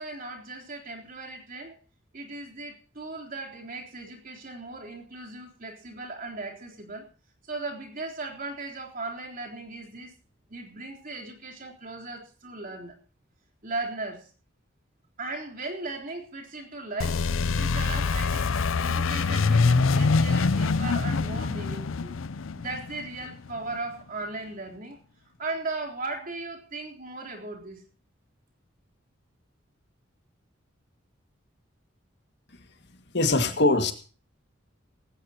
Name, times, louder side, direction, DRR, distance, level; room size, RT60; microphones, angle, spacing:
voice 1, 0.0-1.8 2.1-7.0 7.4-10.1 10.5-13.0 13.6-14.3 15.2-17.2 17.5-22.1 22.5-25.0 25.4-27.8, right 2 dB, 45° right, 1 dB, 3.7 m, -37 dB
sound 1, 17.0-23.6, left 4 dB, 90° left, 0.6 m, -25 dB
voice 2, 33.1-33.9, left 2 dB, 60° left, 7 dB, 2.1 m, -22 dB
18.5 x 16.5 x 2.9 m, 0.37 s
head